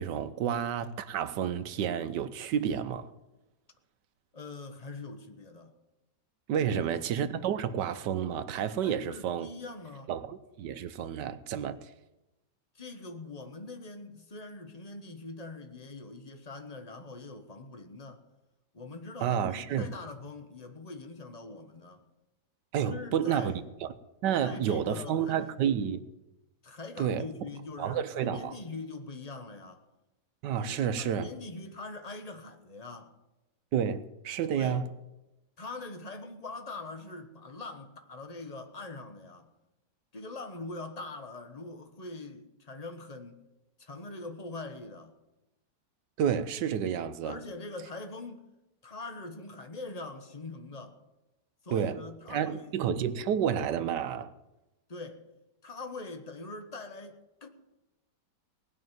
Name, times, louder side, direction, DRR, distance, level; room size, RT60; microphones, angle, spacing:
voice 1, 0.0-3.1 6.5-9.5 10.1-11.9 19.2-19.9 22.7-23.5 23.8-23.9 24.2-26.0 27.0-27.3 27.8-28.5 30.4-31.3 33.7-34.9 46.2-47.4 51.7-52.0 52.3-54.3, right 8 dB, 85° right, 1.4 m, -30 dB
voice 2, 4.3-5.7 6.6-6.9 8.8-10.1 12.7-18.2 18.7-22.0 22.8-23.6 24.4-25.5 26.6-29.8 30.6-33.1 34.5-34.9 35.6-39.5 40.1-43.4 43.8-45.2 47.2-48.5 48.8-51.0 51.6-52.8 54.9-55.2 55.6-57.5, left 3 dB, 25° left, 1.2 m, -43 dB
18.5 x 6.3 x 9.3 m
omnidirectional pair, 1.8 m